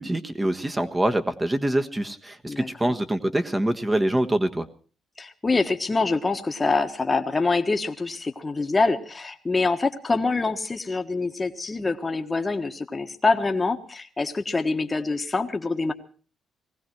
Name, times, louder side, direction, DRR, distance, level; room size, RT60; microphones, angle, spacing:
voice 1, 0.0-4.7, right 1 dB, 15° right, 8 dB, 1.4 m, -25 dB
voice 2, 2.5-3.0 5.2-15.9, left 3 dB, 25° left, 6 dB, 1.4 m, -25 dB
19.5 x 16.0 x 4.6 m, 0.40 s
cardioid pair, 90°, 0 cm